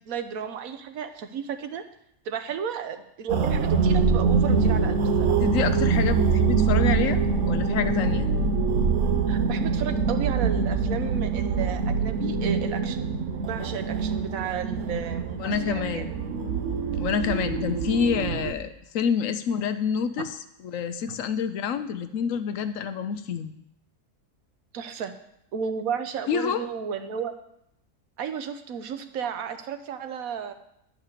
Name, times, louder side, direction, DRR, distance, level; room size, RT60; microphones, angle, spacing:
voice 1, 0.1-1.8 2.2-5.4 9.3-13.1 13.4-16.1 24.7-25.1 25.5-27.3 28.2-30.5, right 7 dB, 85° right, 9 dB, 1.2 m, -33 dB
sound 1, 3.3-18.5, right 5 dB, 65° right, 1.1 m, -24 dB
voice 2, 5.4-7.2 7.5-8.3 15.4-16.1 17.0-20.3 20.6-23.5 26.3-26.6, left 7 dB, 75° left, 10 dB, 1.0 m, -27 dB
10.5 x 4.8 x 6.5 m, 0.76 s
omnidirectional pair, 1.4 m